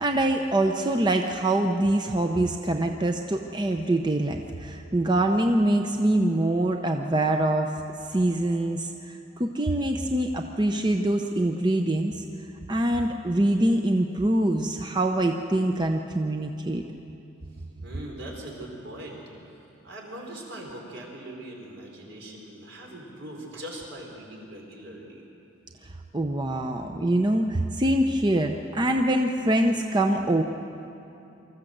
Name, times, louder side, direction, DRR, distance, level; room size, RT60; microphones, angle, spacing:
voice 1, 0.0-7.7 8.1-12.2 12.7-16.8 25.8-30.4, right 1 dB, 20° right, 4 dB, 0.7 m, -24 dB
voice 2, 17.5-19.2 19.5-25.3, right 1 dB, 70° right, -1 dB, 4.6 m, -41 dB
25.0 x 14.0 x 7.9 m, 2.9 s
head